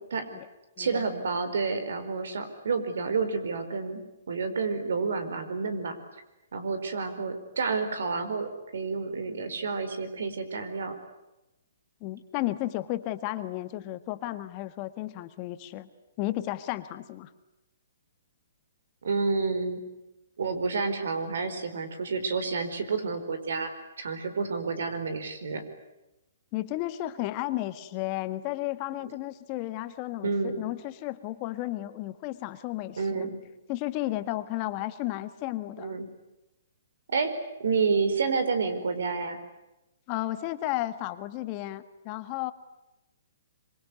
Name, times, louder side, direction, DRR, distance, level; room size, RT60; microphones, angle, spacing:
voice 1, 0.8-4.0 4.3-6.0 6.5-10.9 19.0-19.8 20.4-23.7 24.0-25.6 30.2-30.6 33.0-33.4 35.8-36.1 37.1-37.3 37.6-39.4, right 4 dB, 75° right, 10 dB, 4.6 m, -29 dB
voice 2, 12.0-15.9 16.2-17.3 26.5-33.3 33.7-36.0 40.1-42.5, left 16 dB, 35° left, 11 dB, 1.6 m, -33 dB
26.0 x 23.5 x 9.8 m, 0.96 s
hypercardioid pair, 145°, 0 cm